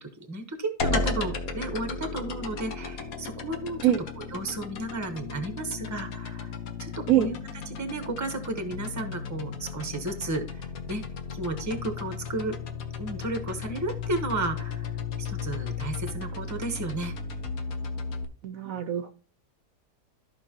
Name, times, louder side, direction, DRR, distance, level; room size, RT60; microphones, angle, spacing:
voice 1, 0.0-3.9 4.2-6.5 6.8-7.4 7.7-11.0 11.3-12.6 13.0-14.9 15.2-17.1, right 2 dB, 15° right, 7 dB, 0.8 m, -33 dB
sound 1, 0.8-18.2, left 4 dB, 60° left, 1.4 m, -35 dB
voice 2, 18.4-19.1, right 11 dB, 65° right, 10 dB, 0.9 m, -24 dB
13.5 x 5.3 x 2.9 m, 0.38 s
omnidirectional pair, 1.8 m